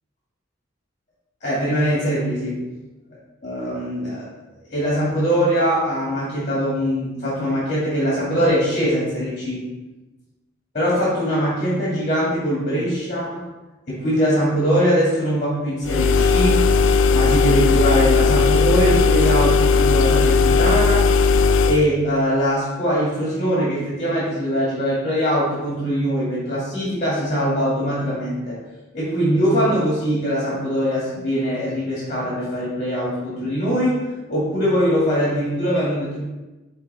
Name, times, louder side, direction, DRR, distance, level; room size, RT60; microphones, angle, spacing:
voice 1, 1.4-2.7 3.4-4.3 4.7-9.7 10.7-13.5 13.9-16.7 17.1-21.1 21.7-28.6 28.9-36.2, equal, 40° left, -8 dB, 2.1 m, -22 dB
sound 1, 15.8-21.9, left 4 dB, 80° left, 0.4 m, -17 dB
9.5 x 3.4 x 3.4 m, 1.1 s
head